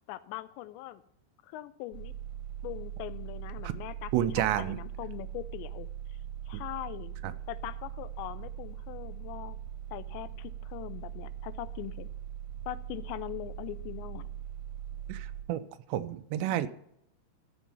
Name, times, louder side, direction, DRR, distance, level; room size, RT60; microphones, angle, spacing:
voice 1, 0.1-1.0 1.4-2.1 2.6-4.3 4.6-6.2 6.5-7.2 7.5-9.6 9.9-12.1 12.7-14.3, left 15 dB, 85° left, 14 dB, 2.8 m, -41 dB
sound 1, 1.9-15.4, right 10 dB, 60° right, 2.2 m, -41 dB
voice 2, 4.1-4.8 7.2-7.3 15.1-15.6 15.9-16.7, right 12 dB, 85° right, 12 dB, 2.8 m, -30 dB
13.0 x 7.0 x 5.4 m, 0.72 s
omnidirectional pair, 5.1 m